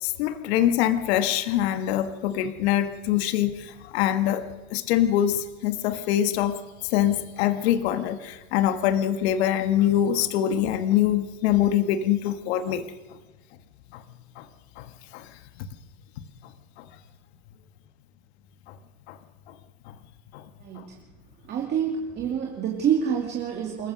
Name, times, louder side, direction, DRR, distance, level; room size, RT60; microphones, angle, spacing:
voice 1, 0.0-12.9 13.9-14.0 14.4-14.5 14.8-15.3 15.6-15.7 16.8-16.9 18.7-18.8 19.1-19.2 19.5-19.6 19.9-20.0 20.3-20.5 20.8-20.9, left 11 dB, 55° left, 9 dB, 1.7 m, -24 dB
voice 2, 20.6-21.0 21.4-23.9, right 8 dB, 25° right, 0 dB, 2.5 m, -27 dB
28.0 x 14.0 x 6.5 m, 1.1 s
supercardioid pair, 135°, 39 cm